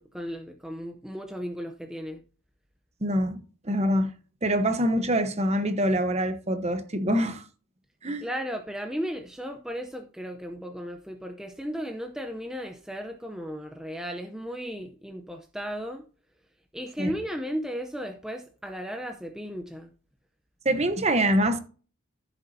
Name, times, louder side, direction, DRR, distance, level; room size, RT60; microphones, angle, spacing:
voice 1, 0.0-2.2 8.2-16.0 16.7-19.9, equal, 5° right, 0.6 m, -35 dB
voice 2, 3.0-3.4 3.6-4.1 4.4-7.4 8.0-8.2 17.0-17.1 20.6-21.6, equal, 30° right, 1.0 m, -25 dB
14.5 x 7.1 x 2.7 m
head